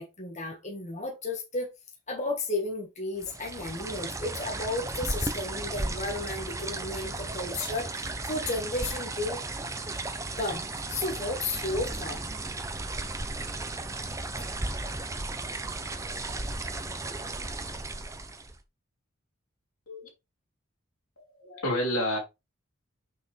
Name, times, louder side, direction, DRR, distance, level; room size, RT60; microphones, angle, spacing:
voice 1, 0.0-1.7 2.1-9.4 10.4-12.2, left 2 dB, 35° left, 1.5 m, -33 dB
sound 1, 3.2-18.6, right 2 dB, 15° right, 0.6 m, -35 dB
voice 2, 21.2-22.2, left 1 dB, 85° left, 3.1 m, -30 dB
6.3 x 6.0 x 3.3 m
head